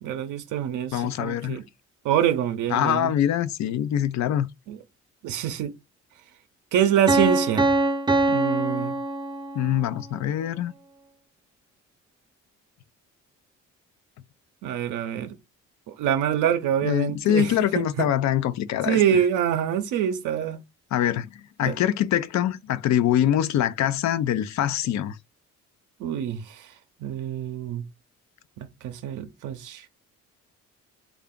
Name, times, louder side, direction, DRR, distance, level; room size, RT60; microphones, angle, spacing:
voice 1, 0.0-1.6 2.0-3.2 4.7-4.8 5.2-5.7 6.7-7.7 8.3-9.0 14.6-15.4 15.9-18.1 18.8-20.6 21.6-21.8 26.0-26.7 27.0-27.8 28.6-29.9, right 9 dB, 80° right, 0.6 m, -25 dB
voice 2, 0.9-1.6 2.7-4.5 9.5-10.7 16.8-19.0 20.9-21.3 21.6-25.2, left 11 dB, 65° left, 0.5 m, -24 dB
Piano, 7.1-9.9, right 2 dB, 15° right, 0.6 m, -23 dB
3.3 x 2.4 x 3.7 m
cardioid pair, 90°, 30 cm